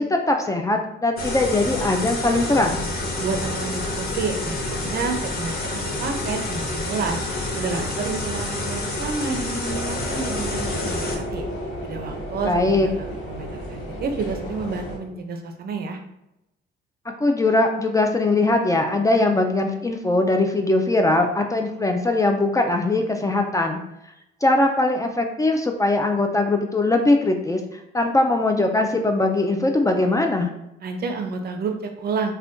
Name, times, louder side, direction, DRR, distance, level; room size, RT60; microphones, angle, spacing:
voice 1, 0.0-2.8 12.4-12.9 17.2-23.8 24.4-30.5, left 2 dB, 15° left, 4 dB, 0.3 m, -21 dB
sound 1, 1.2-11.2, left 2 dB, 50° left, 0.8 m, -28 dB
voice 2, 3.2-7.2 7.6-11.5 11.8-16.0 30.8-32.3, right 4 dB, 50° right, 5 dB, 0.5 m, -30 dB
sound 2, 9.6-15.0, equal, 85° left, 1.1 m, -32 dB
2.5 x 2.2 x 3.5 m, 0.87 s
cardioid pair, 90°, 20 cm